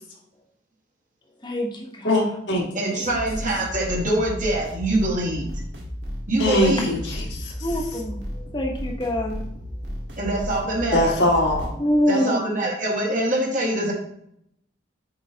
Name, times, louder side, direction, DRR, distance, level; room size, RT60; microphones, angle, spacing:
voice 1, 1.4-2.4 2.9-3.1 3.6-3.7 7.6-9.5 11.8-12.4, left 1 dB, 25° left, 1 dB, 1.1 m, -26 dB
voice 2, 2.0-2.6 6.4-7.5 10.9-11.7, left 1 dB, 80° left, -2 dB, 1.8 m, -21 dB
voice 3, 2.7-5.5 6.3-7.0 10.2-11.1 12.1-13.9, right 1 dB, 45° right, -1 dB, 1.7 m, -24 dB
sound 1, 3.0-11.7, equal, 75° right, 1.8 m, -33 dB
7.5 x 4.7 x 2.8 m, 0.73 s
head